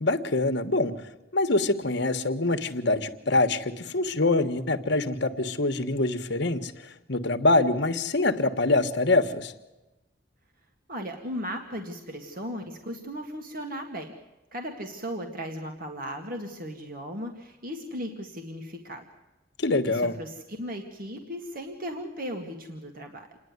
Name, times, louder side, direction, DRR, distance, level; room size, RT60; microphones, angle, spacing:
voice 1, 0.0-9.5 19.6-20.2, left 2 dB, 60° left, 9 dB, 1.3 m, -25 dB
voice 2, 10.9-14.1 14.5-19.0 19.9-23.3, equal, 50° right, 3 dB, 2.0 m, -36 dB
28.0 x 10.5 x 9.5 m, 1.0 s
head